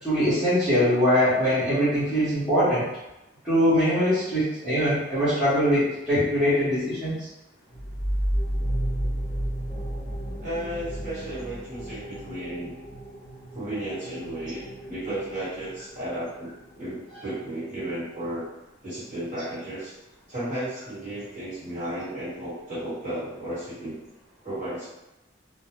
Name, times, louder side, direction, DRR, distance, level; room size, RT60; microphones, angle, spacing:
voice 1, 0.0-2.9 3.4-7.3, equal, ahead, -15 dB, 0.9 m, -22 dB
sound 1, 7.7-17.1, equal, 25° left, 0.5 m, -32 dB
voice 2, 10.4-12.7 13.5-18.5 18.8-19.9 20.3-24.0 24.4-24.9, right 1 dB, 40° right, -11 dB, 1.4 m, -34 dB
2.3 x 2.2 x 2.9 m, 0.96 s
head